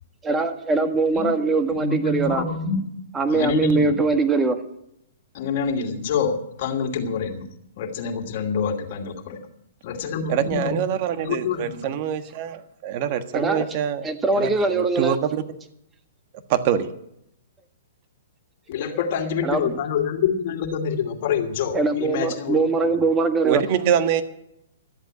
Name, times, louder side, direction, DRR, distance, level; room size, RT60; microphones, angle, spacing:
voice 1, 0.2-2.5 3.1-4.6 13.3-13.7 14.0-15.2 19.4-19.8 21.7-23.6, right 3 dB, 15° right, 8 dB, 1.6 m, -22 dB
voice 2, 1.7-2.8 3.3-4.0 5.3-7.5 7.8-9.4 9.8-10.7 11.2-11.9 18.7-22.6, left 6 dB, 50° left, 4 dB, 2.7 m, -26 dB
voice 3, 10.3-14.0 14.3-15.4 16.5-16.9 23.4-24.2, right 9 dB, 45° right, 10 dB, 1.4 m, -24 dB
13.5 x 8.1 x 9.7 m, 0.77 s
hypercardioid pair, 130°, 0 cm